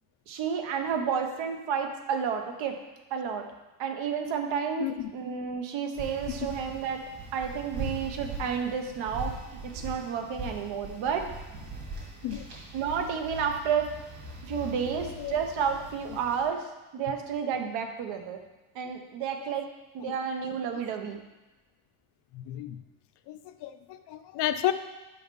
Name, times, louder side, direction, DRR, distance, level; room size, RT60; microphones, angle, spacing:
voice 1, 0.3-2.8 3.1-3.5 3.8-9.4 9.6-11.3 12.7-13.9 14.5-18.4 18.7-19.7 19.9-21.2, right 7 dB, 80° right, 5 dB, 1.0 m, -31 dB
voice 2, 4.8-5.1 12.2-12.5 14.9-15.4 16.1-16.2 22.3-22.8 23.3-24.7, left 12 dB, 60° left, 11 dB, 0.5 m, -32 dB
sound 1, 5.9-16.4, right 2 dB, 55° right, 2.5 m, -41 dB
5.8 x 5.4 x 5.4 m, 1.1 s
cardioid pair, 170°, 46 cm